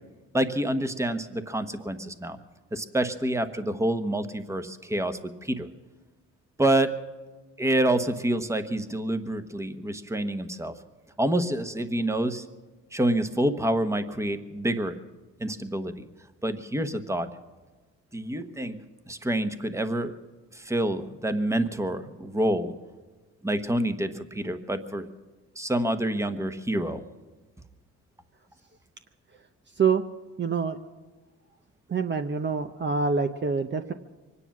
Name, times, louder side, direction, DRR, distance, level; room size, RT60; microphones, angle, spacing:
voice 1, 0.3-2.4 2.7-5.7 6.6-7.0 7.6-10.7 11.2-12.5 12.9-15.0 15.4-16.1 16.4-17.3 18.1-20.1 20.5-22.7 23.4-25.1 25.6-27.0, right 1 dB, 10° right, 9 dB, 1.2 m, -27 dB
voice 2, 30.4-30.8 31.9-33.9, right 5 dB, 35° right, 7 dB, 0.8 m, -26 dB
24.0 x 9.9 x 6.1 m, 1.3 s
cardioid pair, 90°, 30 cm